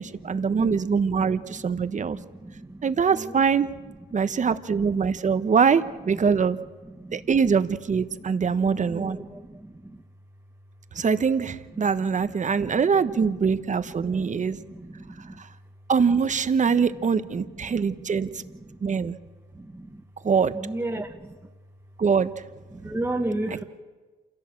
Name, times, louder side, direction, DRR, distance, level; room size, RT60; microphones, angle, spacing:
voice 1, 0.0-2.2 2.8-3.7 4.1-6.6 7.1-9.2 10.9-14.6 15.9-18.3 18.8-19.1 20.2-20.5 22.0-22.3, right 6 dB, 40° right, 12 dB, 1.2 m, -23 dB
voice 2, 8.9-9.2 20.5-21.1 22.8-23.6, right 1 dB, 10° right, 1 dB, 1.4 m, -29 dB
27.5 x 16.0 x 7.6 m, 1.3 s
cardioid pair, 90°, 20 cm